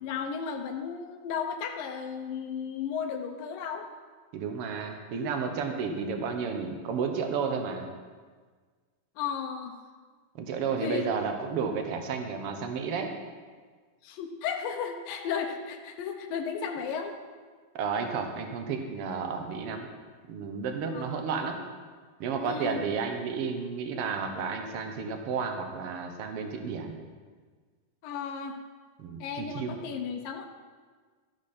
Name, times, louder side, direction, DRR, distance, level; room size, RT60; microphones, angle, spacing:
voice 1, 0.0-3.9 9.2-9.7 10.8-11.1 14.0-17.2 20.9-21.4 22.4-22.9 28.0-28.6 29.2-30.5, left 6 dB, 85° left, 4 dB, 2.5 m, -34 dB
voice 2, 4.3-7.9 10.4-13.1 17.7-19.9 20.3-21.6 22.2-27.0 29.0-29.8, right 5 dB, 65° right, 5 dB, 1.4 m, -32 dB
13.5 x 9.9 x 4.3 m, 1.5 s
omnidirectional pair, 3.9 m